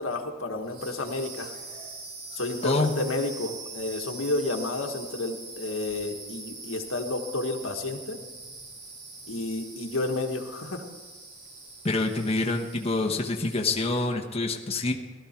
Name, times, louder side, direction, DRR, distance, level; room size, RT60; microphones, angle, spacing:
voice 1, 0.0-1.5 2.3-8.2 9.3-10.8, left 2 dB, 90° left, 3 dB, 1.6 m, -31 dB
sound 1, 0.6-14.2, right 3 dB, 50° right, 4.1 m, -43 dB
voice 2, 11.8-14.9, left 2 dB, 30° left, 2 dB, 1.1 m, -26 dB
17.5 x 13.0 x 4.5 m, 1.3 s
head